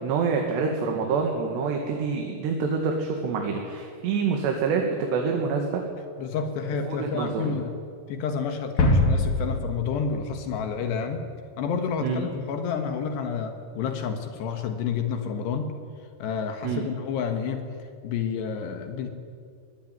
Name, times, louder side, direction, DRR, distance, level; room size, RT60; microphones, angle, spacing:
voice 1, 0.0-5.8 6.9-7.5 12.0-12.2 16.6-16.8, right 5 dB, 75° right, 2 dB, 4.2 m, -26 dB
voice 2, 6.2-7.8 8.1-11.3 11.6-15.7 16.2-19.1, left 6 dB, 80° left, 6 dB, 3.7 m, -29 dB
sound 1, 8.8-11.3, left 2 dB, 55° left, 4.6 m, -24 dB
23.0 x 19.0 x 9.4 m, 2.2 s
omnidirectional pair, 4.9 m